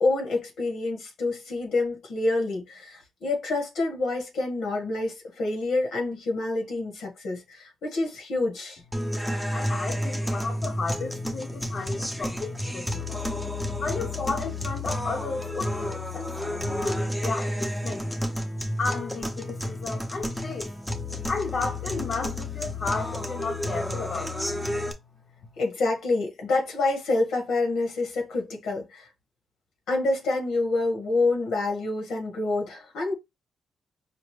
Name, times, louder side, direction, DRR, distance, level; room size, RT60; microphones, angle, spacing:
voice 1, 0.0-8.8 25.6-29.1 29.9-33.1, left 2 dB, 90° left, 1.6 m, -27 dB
sound 1, 8.9-24.9, left 1 dB, 5° left, 0.6 m, -31 dB
voice 2, 9.5-13.3 13.8-18.2 18.8-20.8 21.3-24.5, left 4 dB, 45° left, 0.7 m, -33 dB
5.1 x 2.0 x 3.2 m
cardioid pair, 140°, 0 cm